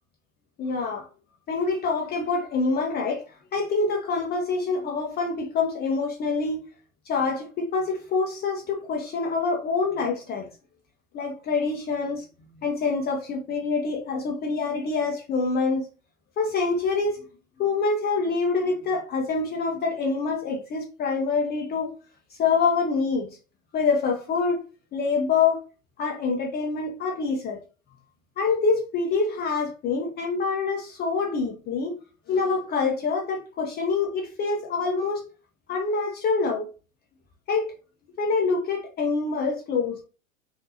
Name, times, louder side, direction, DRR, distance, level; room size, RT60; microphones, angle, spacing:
voice 1, 0.6-1.0 1.5-3.2 3.5-6.6 7.1-10.5 11.1-12.2 12.6-15.8 16.4-17.2 17.6-21.9 22.4-23.3 23.7-24.6 24.9-25.6 26.0-27.6 28.4-31.9 32.3-35.2 35.7-36.7 37.5-37.7 38.2-40.0, left 4 dB, 25° left, 0.7 m, -26 dB
3.7 x 2.5 x 2.8 m
figure-of-eight pair, 90°, 39 cm